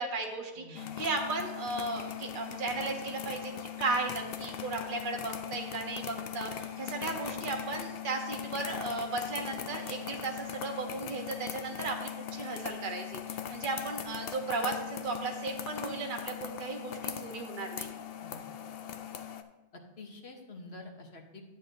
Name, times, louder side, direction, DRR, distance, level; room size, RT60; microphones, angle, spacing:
voice 1, 0.0-17.9, right 3 dB, 55° right, 2 dB, 1.1 m, -35 dB
voice 2, 0.6-1.0 18.2-18.4 19.7-21.4, left 3 dB, 85° left, 1 dB, 1.4 m, -48 dB
sound 1, 0.7-19.4, left 9 dB, 70° left, 0.8 m, -40 dB
12.0 x 8.2 x 2.7 m, 1.0 s
omnidirectional pair, 1.0 m